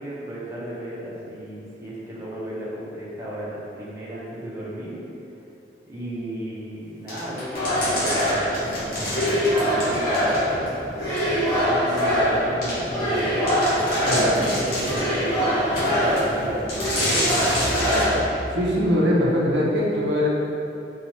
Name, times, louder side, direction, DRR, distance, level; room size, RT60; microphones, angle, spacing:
voice 1, 0.0-5.0 5.9-10.7 11.6-13.4 13.9-18.2, right 1 dB, 15° right, -8 dB, 0.6 m, -34 dB
sound 1, 7.1-10.7 11.2-11.3 12.0-12.1 12.6-12.8 13.2-13.3 13.5-15.1 15.7-16.3 16.7-18.1, left 1 dB, 55° left, 1.0 m, -28 dB
sound 2, 7.5-18.2, equal, 15° left, 1.0 m, -23 dB
voice 2, 14.1-14.5 18.6-20.3, left 1 dB, 85° right, -4 dB, 0.6 m, -21 dB
4.2 x 2.3 x 2.8 m, 2.8 s
head